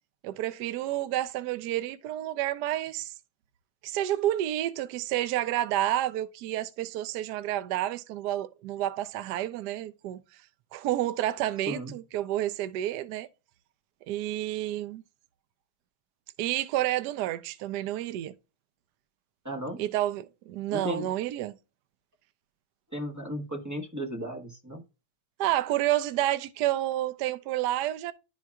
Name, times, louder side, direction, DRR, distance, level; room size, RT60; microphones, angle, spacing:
voice 1, 0.2-3.1 3.8-10.2 10.7-13.3 14.1-15.0 16.4-18.3 19.8-21.5 25.4-28.1, right 13 dB, 75° right, 1.0 m, -30 dB
voice 2, 19.4-19.8 20.7-21.1 22.9-24.8, equal, 15° right, 0.6 m, -35 dB
11.0 x 4.5 x 2.3 m
omnidirectional pair, 2.1 m